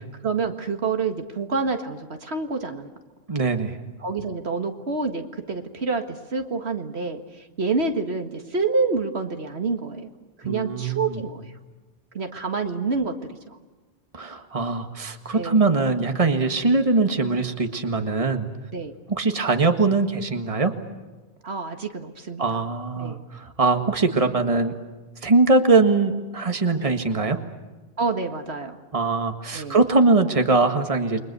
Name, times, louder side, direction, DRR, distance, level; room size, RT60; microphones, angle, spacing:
voice 1, 0.2-2.9 4.0-10.1 10.4-11.5 12.1-13.6 15.3-15.6 18.7-19.0 21.4-22.5 23.0-23.3 26.8-26.9 28.0-28.8 29.5-29.8, right 4 dB, 70° right, 6 dB, 2.0 m, -28 dB
voice 2, 3.3-3.8 10.4-11.2 14.1-18.5 19.1-20.7 22.4-24.7 25.2-27.4 28.9-31.2, right 3 dB, 30° right, 6 dB, 1.8 m, -21 dB
29.5 x 23.0 x 6.9 m, 1.2 s
omnidirectional pair, 1.1 m